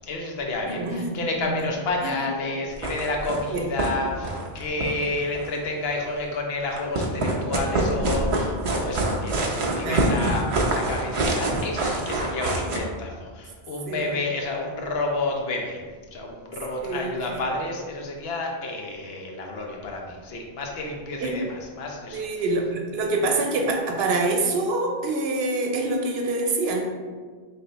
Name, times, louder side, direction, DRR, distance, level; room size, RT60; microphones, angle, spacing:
voice 1, 0.1-15.8 16.1-22.3, left 2 dB, 75° left, 0 dB, 0.9 m, -30 dB
voice 2, 0.7-1.0 2.0-2.1 3.5-3.6 9.8-10.0 13.9-14.1 16.8-17.1 21.2-21.3 22.1-26.8, right 2 dB, 80° right, 1 dB, 0.9 m, -25 dB
sound 1, 2.7-3.5 3.8-3.9 4.2-5.6 6.7-12.8, right 2 dB, 45° right, 0.5 m, -25 dB
3.3 x 2.6 x 4.0 m, 1.5 s
omnidirectional pair, 1.0 m